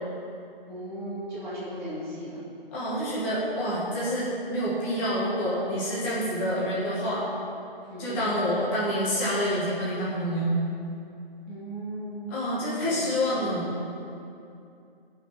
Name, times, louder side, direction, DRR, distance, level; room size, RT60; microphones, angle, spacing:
voice 1, 0.7-2.4 7.9-8.2 11.5-12.3 12.6-13.3, equal, 10° right, -20 dB, 2.7 m, -37 dB
voice 2, 2.7-7.3 8.0-10.6 12.3-13.7, equal, 10° left, -9 dB, 1.8 m, -27 dB
16.0 x 5.9 x 5.7 m, 2.6 s
hypercardioid pair, 165°, 29 cm